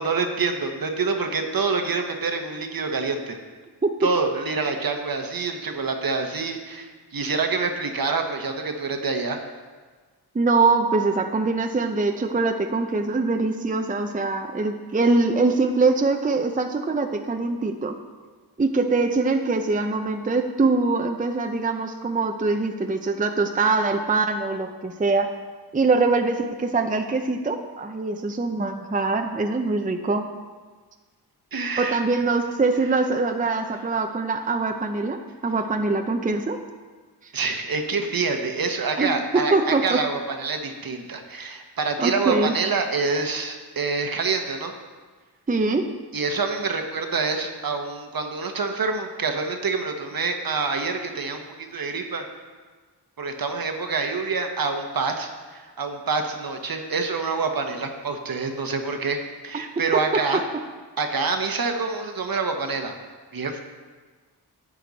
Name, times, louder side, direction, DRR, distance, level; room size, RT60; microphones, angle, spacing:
voice 1, 0.0-3.4 4.0-9.4 31.5-32.0 37.3-44.7 46.1-52.2 53.2-60.4 61.0-62.9 63.3-63.6, right 4 dB, 55° right, 5 dB, 1.1 m, -26 dB
voice 2, 10.3-18.0 18.6-25.3 25.7-30.3 31.8-36.6 37.2-37.3 39.0-40.0 42.0-42.5 45.5-45.9 59.9-60.4, right 3 dB, 20° right, 5 dB, 0.6 m, -23 dB
11.0 x 8.2 x 4.0 m, 1.4 s
cardioid pair, 70°, 41 cm